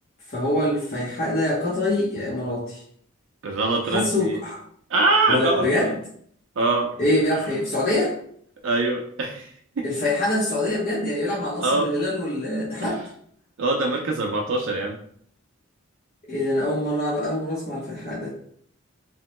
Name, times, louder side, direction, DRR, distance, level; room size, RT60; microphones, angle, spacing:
voice 1, 0.3-2.8 3.9-4.6 5.3-6.0 7.0-8.1 9.8-13.0 16.3-18.3, left 1 dB, 45° left, -7 dB, 0.7 m, -24 dB
voice 2, 3.4-4.4 4.9-5.9 6.6-6.9 8.6-9.5 9.8-9.9 11.6-11.9 13.6-15.0, right 2 dB, 65° right, 1 dB, 0.4 m, -23 dB
3.0 x 2.1 x 2.9 m, 0.62 s
head